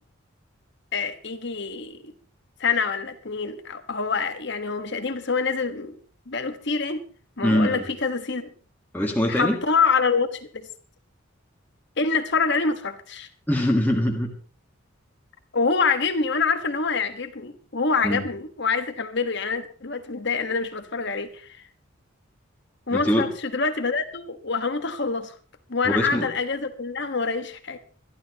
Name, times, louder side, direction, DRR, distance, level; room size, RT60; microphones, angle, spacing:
voice 1, 0.9-2.1 2.6-6.0 6.3-7.0 7.4-8.5 9.3-10.7 12.0-13.3 15.5-21.6 22.9-25.3 25.7-27.8, left 4 dB, 60° left, 8 dB, 1.4 m, -26 dB
voice 2, 7.4-7.9 8.9-9.6 13.5-14.3 18.0-18.2 22.9-23.3 25.8-26.3, equal, 10° left, 0 dB, 1.6 m, -22 dB
24.5 x 12.0 x 3.0 m, 0.40 s
head